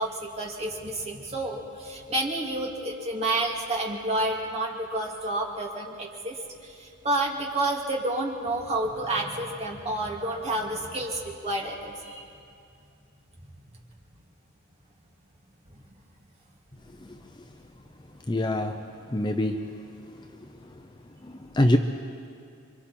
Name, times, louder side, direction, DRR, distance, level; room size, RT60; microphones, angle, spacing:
voice 1, 0.0-12.2, right 2 dB, 30° right, -1 dB, 2.4 m, -30 dB
voice 2, 18.3-18.8 19.1-19.6 21.5-21.8, left 1 dB, 20° left, 5 dB, 0.6 m, -23 dB
27.5 x 24.0 x 4.3 m, 2.4 s
head